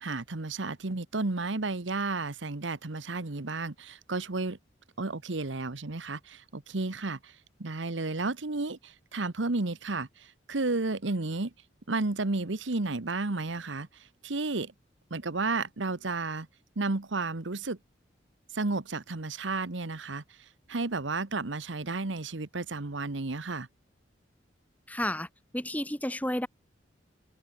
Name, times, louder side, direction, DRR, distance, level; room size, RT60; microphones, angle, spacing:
voice 1, 0.0-4.6 5.0-7.3 7.6-10.1 10.5-11.5 11.9-13.9 14.2-14.7 15.1-16.5 16.8-17.8 18.5-20.2 20.7-23.7, right 3 dB, 80° right, 1.2 m, -32 dB
voice 2, 24.9-25.3 25.5-26.5, left 1 dB, 10° left, 3.3 m, -31 dB
head